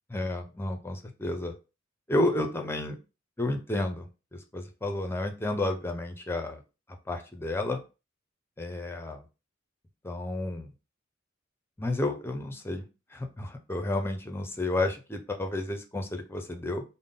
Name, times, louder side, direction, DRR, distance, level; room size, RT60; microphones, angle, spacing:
voice 1, 0.1-1.5 2.1-3.0 3.4-6.6 7.1-7.8 8.6-9.2 10.0-10.7 11.8-12.9 13.1-16.8, left 2 dB, 10° left, 6 dB, 0.5 m, -31 dB
3.6 x 2.1 x 3.7 m, 0.30 s
head